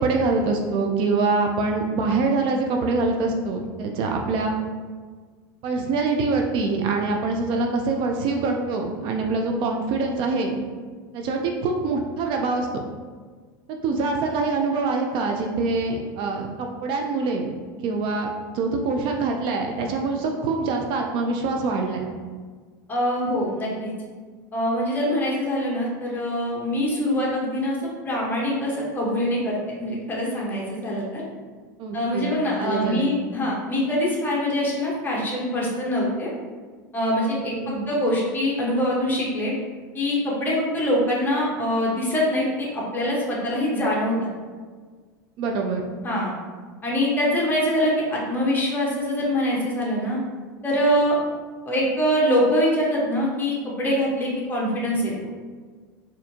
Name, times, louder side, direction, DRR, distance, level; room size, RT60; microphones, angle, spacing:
voice 1, 0.0-4.6 5.6-10.6 11.1-12.8 13.8-17.5 17.8-22.1 31.8-33.2 37.6-37.9 45.4-45.8, right 3 dB, 50° right, 2 dB, 0.4 m, -24 dB
voice 2, 22.9-23.9 24.5-27.8 28.0-31.2 31.9-36.3 36.9-39.5 39.9-44.3 46.0-46.3 46.8-50.2 50.6-51.2 51.6-55.1, equal, 15° left, -4 dB, 1.1 m, -24 dB
4.1 x 2.7 x 2.8 m, 1.5 s
hypercardioid pair, 105°, 11 cm